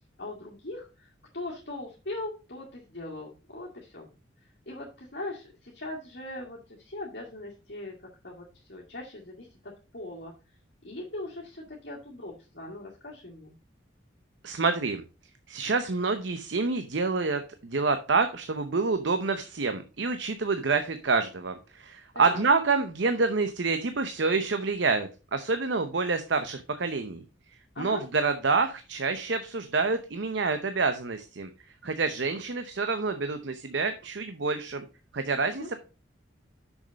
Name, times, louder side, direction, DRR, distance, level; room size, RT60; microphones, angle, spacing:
voice 1, 0.2-4.1 4.7-10.3 10.8-13.5 22.1-22.4 27.7-28.0 35.6-35.7, left 2 dB, 60° left, -4 dB, 2.0 m, -40 dB
voice 2, 14.4-15.0 15.5-27.2 27.8-31.5 31.8-34.9 35.1-35.7, right 4 dB, 70° right, 9 dB, 0.7 m, -27 dB
6.5 x 6.2 x 5.2 m, 0.32 s
head